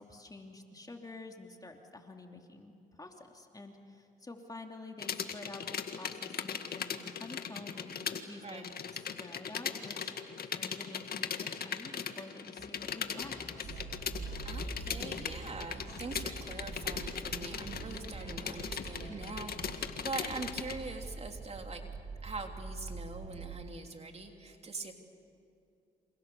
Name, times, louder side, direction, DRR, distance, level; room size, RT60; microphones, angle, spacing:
voice 1, 0.0-2.7 3.0-10.1 10.4-13.8, left 2 dB, 20° left, 3 dB, 3.1 m, -49 dB
sound 1, 5.0-8.2 8.5-20.8, left 7 dB, 60° left, 1.9 m, -39 dB
sound 2, 12.6-20.0, left 3 dB, 40° left, 5.9 m, -52 dB
sound 3, 13.6-23.6, right 4 dB, 60° right, 3.6 m, -45 dB
voice 2, 14.4-21.8 22.2-24.9, right 3 dB, 35° right, 3 dB, 3.3 m, -43 dB
29.0 x 28.0 x 7.1 m, 2.6 s
supercardioid pair, 65°, 18 cm